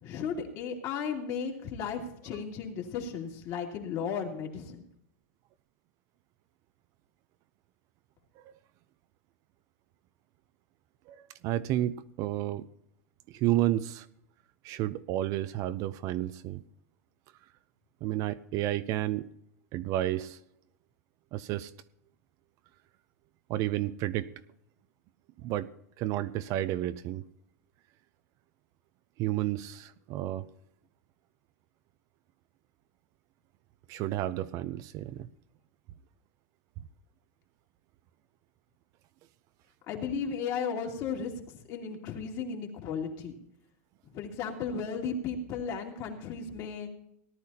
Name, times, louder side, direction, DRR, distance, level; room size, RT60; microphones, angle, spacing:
voice 1, 0.0-4.8 39.9-43.4 44.0-46.9, left 6 dB, 40° left, 1 dB, 2.6 m, -35 dB
voice 2, 11.4-12.7 13.3-14.1 14.6-16.6 18.0-19.3 19.7-20.4 21.3-21.7 23.5-24.3 25.4-25.7 26.0-27.2 29.2-30.5 33.9-35.3, right 14 dB, 40° right, 13 dB, 0.5 m, -31 dB
18.0 x 11.5 x 2.9 m, 0.73 s
supercardioid pair, 140°, 9 cm